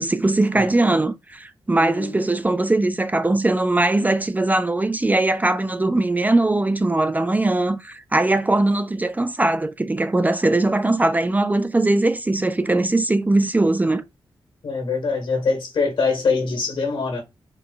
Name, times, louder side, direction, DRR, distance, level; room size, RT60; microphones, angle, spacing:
voice 1, 0.0-14.0, right 2 dB, 20° right, 0.4 m, -20 dB
voice 2, 1.8-2.3 14.6-17.2, left 4 dB, 70° left, 1.7 m, -24 dB
4.5 x 2.2 x 3.9 m
cardioid pair, 70°, 9 cm